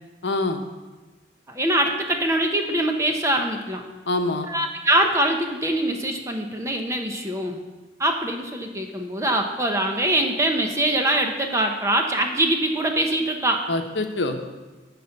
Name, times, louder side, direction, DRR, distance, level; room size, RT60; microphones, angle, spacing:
voice 1, 0.2-0.6 4.1-4.5 13.7-14.4, left 2 dB, 80° left, 6 dB, 0.9 m, -25 dB
voice 2, 1.5-3.8 4.4-7.6 8.0-13.7, right 1 dB, 15° right, 3 dB, 0.9 m, -23 dB
12.0 x 4.3 x 8.1 m, 1.3 s
head